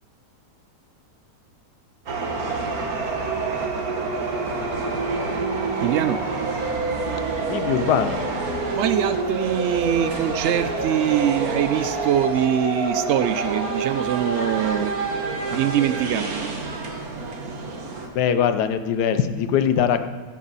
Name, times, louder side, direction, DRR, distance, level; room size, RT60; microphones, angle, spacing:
sound 1, 2.1-18.1, right 3 dB, 65° right, 1.8 m, -27 dB
voice 1, 5.8-6.2 8.7-15.0 15.5-16.5, right 10 dB, 85° right, 11 dB, 0.6 m, -23 dB
voice 2, 7.5-8.2 14.8-14.9 18.1-20.1, left 8 dB, 80° left, 9 dB, 1.3 m, -21 dB
16.0 x 9.0 x 4.1 m, 1.5 s
omnidirectional pair, 1.7 m